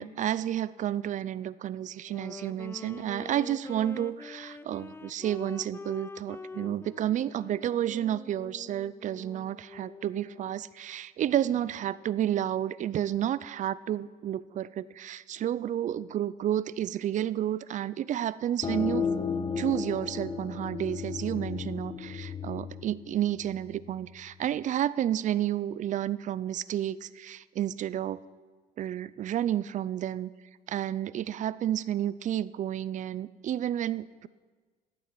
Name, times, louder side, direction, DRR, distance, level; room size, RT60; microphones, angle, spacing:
voice 1, 0.0-19.1 19.6-28.2 28.8-30.3 30.7-34.3, right 11 dB, 45° right, 19 dB, 0.4 m, -31 dB
Wind instrument woodwind instrument, 2.0-10.7, left 4 dB, 15° left, 0.5 m, -45 dB
sound 1, 18.6-24.0, left 6 dB, 30° left, 1.0 m, -34 dB
13.0 x 8.6 x 7.5 m, 1.4 s
cardioid pair, 110°, 17 cm